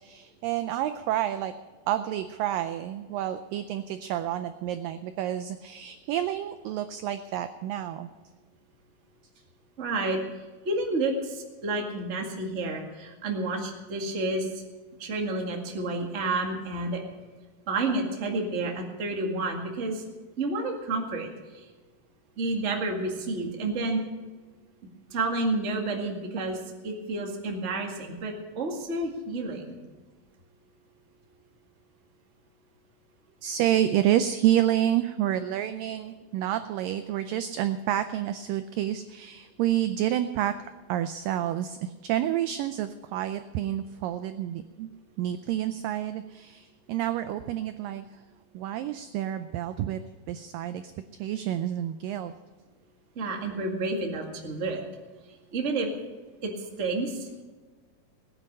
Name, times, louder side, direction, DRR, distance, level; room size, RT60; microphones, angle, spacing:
voice 1, 0.0-1.5 1.9-8.1 33.4-40.5 40.9-44.9 45.2-48.2 48.5-50.0 50.3-50.8 51.2-52.3, right 12 dB, 85° right, 10 dB, 2.0 m, -29 dB
voice 2, 9.8-10.2 10.6-14.5 15.0-17.0 17.7-20.0 20.4-21.6 22.4-24.0 25.1-26.6 26.8-29.8 53.1-54.8 55.5-55.9 56.4-56.5 56.8-57.4, right 2 dB, 35° right, 1 dB, 1.2 m, -30 dB
19.0 x 10.0 x 5.4 m, 1.3 s
omnidirectional pair, 4.6 m